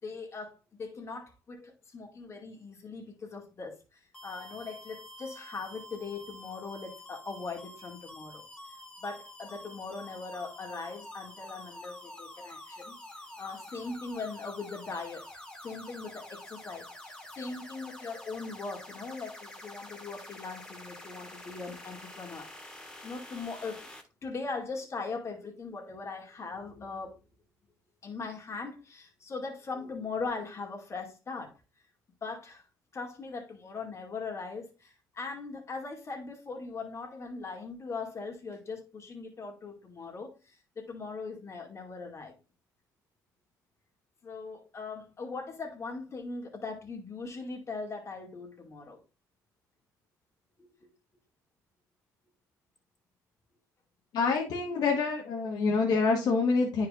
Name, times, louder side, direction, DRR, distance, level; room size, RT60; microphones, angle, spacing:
voice 1, 0.0-8.4 9.0-13.0 13.4-23.9 24.2-27.2 28.0-31.5 32.2-32.7 32.9-42.3 44.2-49.0 50.6-50.7, left 4 dB, 40° left, 2.3 m, -40 dB
sound 1, 4.1-24.0, left 1 dB, 15° left, 1.7 m, -48 dB
voice 2, 54.1-56.9, left 4 dB, 70° left, 1.4 m, -26 dB
10.0 x 4.7 x 2.5 m
supercardioid pair, 80°, 7 cm